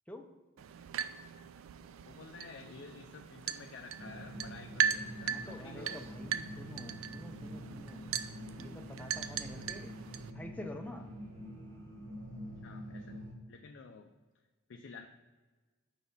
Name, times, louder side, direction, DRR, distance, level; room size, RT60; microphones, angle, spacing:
sound 1, 0.6-10.3, right 8 dB, 85° right, 0.3 m, -39 dB
voice 1, 2.0-6.0 8.7-8.8 12.6-14.1 14.7-15.1, left 4 dB, 65° left, 4 dB, 0.4 m, -51 dB
sound 2, 4.0-13.3, equal, 40° right, 1.2 m, -46 dB
voice 2, 5.3-8.1 8.6-10.0 10.3-11.1, left 1 dB, 5° left, 4 dB, 0.5 m, -48 dB
4.9 x 3.9 x 5.4 m, 1.3 s
head